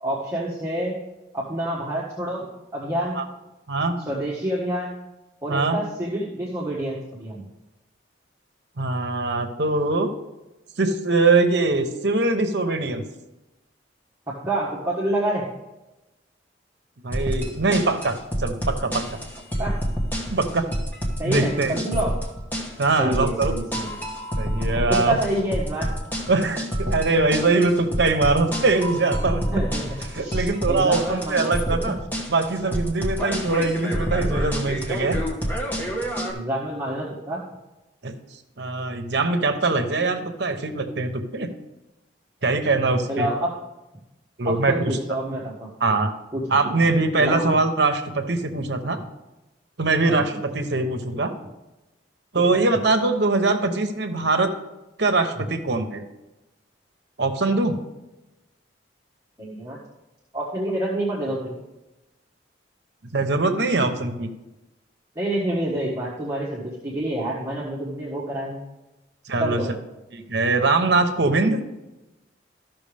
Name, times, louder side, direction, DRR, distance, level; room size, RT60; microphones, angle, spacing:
voice 1, 0.0-1.0 1.3-2.5 2.7-3.2 4.1-4.9 5.4-7.4 14.4-15.4 19.6-19.8 21.2-22.2 23.0-24.0 24.9-25.9 29.5-31.9 36.3-37.4 42.7-43.5 44.4-45.7 46.3-46.7 47.2-47.5 50.1-50.6 52.3-52.6 59.4-59.8 60.3-61.6 65.1-68.6 69.4-69.7, right 1 dB, 15° right, -6 dB, 1.4 m, -28 dB
voice 2, 8.8-10.1 10.8-13.0 17.0-19.2 20.3-20.7 21.3-21.7 22.8-23.5 24.4-25.2 26.3-29.4 30.1-32.0 32.3-35.2 38.0-38.1 38.6-41.5 42.4-43.3 44.4-45.0 45.8-46.1 46.5-49.0 49.8-51.3 52.3-54.5 55.0-56.0 57.2-57.8 63.1-64.3 69.3-69.6 70.1-71.6, right 3 dB, 65° right, 6 dB, 0.9 m, -22 dB
sound 1, 17.1-36.3, equal, 10° left, 1.3 m, -28 dB
14.0 x 6.0 x 3.4 m, 1.0 s
head